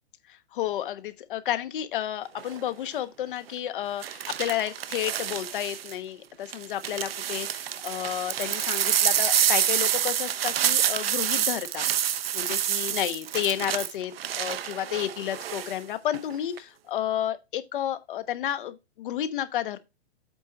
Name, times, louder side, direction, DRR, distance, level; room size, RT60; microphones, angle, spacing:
voice 1, 0.5-11.9 12.3-19.8, left 11 dB, 50° left, 1.1 m, -31 dB
sound 1, 2.4-2.7 4.0-5.9 6.5-15.8 16.1-16.6, right 10 dB, 60° right, 0.8 m, -28 dB
8.2 x 4.5 x 5.0 m
figure-of-eight pair, 125°, 34 cm